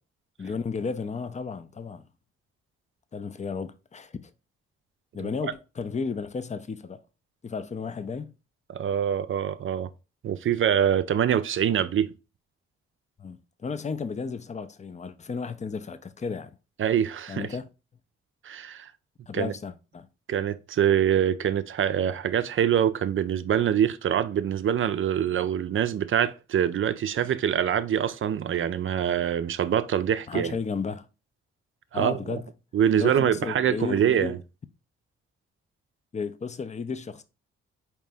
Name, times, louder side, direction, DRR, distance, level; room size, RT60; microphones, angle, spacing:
voice 1, 0.4-2.0 3.1-4.3 5.1-7.0 7.4-8.3 13.2-16.6 17.3-17.7 19.3-20.1 30.3-31.1 31.9-32.5 32.9-34.3 36.1-37.2, left 5 dB, 20° left, 0.5 m, -33 dB
voice 2, 8.7-9.9 10.2-12.1 16.8-17.5 18.4-18.9 19.3-19.5 20.3-30.6 31.9-32.2 32.7-34.4, right 9 dB, 40° right, 0.5 m, -24 dB
4.3 x 2.9 x 3.3 m
hypercardioid pair, 40°, 31 cm